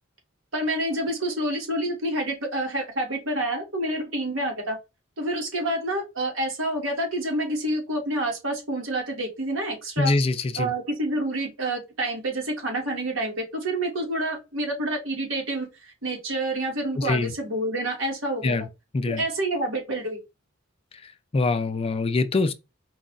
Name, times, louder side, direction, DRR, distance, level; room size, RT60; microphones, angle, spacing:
voice 1, 0.5-4.8 5.2-10.1 10.6-18.6 19.1-20.2, right 1 dB, 85° right, 1.8 m, -28 dB
voice 2, 10.0-10.7 17.0-17.3 18.4-18.7 18.9-19.2 21.3-22.5, left 3 dB, 30° left, 0.4 m, -24 dB
4.7 x 2.4 x 3.9 m
head